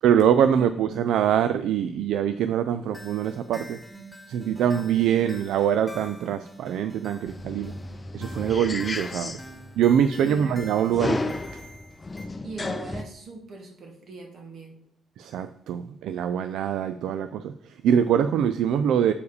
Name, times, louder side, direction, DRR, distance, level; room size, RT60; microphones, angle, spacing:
voice 1, 0.0-3.8 4.3-7.7 8.1-9.4 9.8-11.3 15.2-19.1, right 9 dB, 80° right, 0.3 m, -24 dB
voice 2, 0.5-1.1 10.2-10.6 12.4-14.8, right 3 dB, 60° right, 2.0 m, -40 dB
sound 1, 2.9-12.3, right 1 dB, 5° left, 1.5 m, -46 dB
sound 2, 7.3-13.0, left 2 dB, 25° left, 0.5 m, -33 dB
6.9 x 4.7 x 4.8 m
cardioid pair, 90°, 0 cm